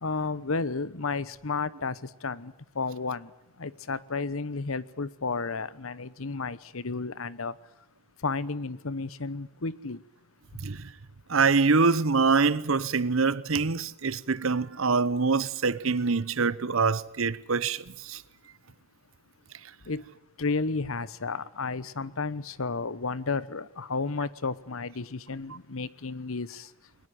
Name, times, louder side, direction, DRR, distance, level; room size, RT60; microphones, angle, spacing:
voice 1, 0.0-3.3 3.6-7.5 8.2-10.0 19.9-20.0 20.4-26.7, left 4 dB, 75° left, 1.0 m, -32 dB
voice 2, 11.3-18.2, right 4 dB, 70° right, 0.9 m, -25 dB
22.5 x 20.0 x 9.5 m
head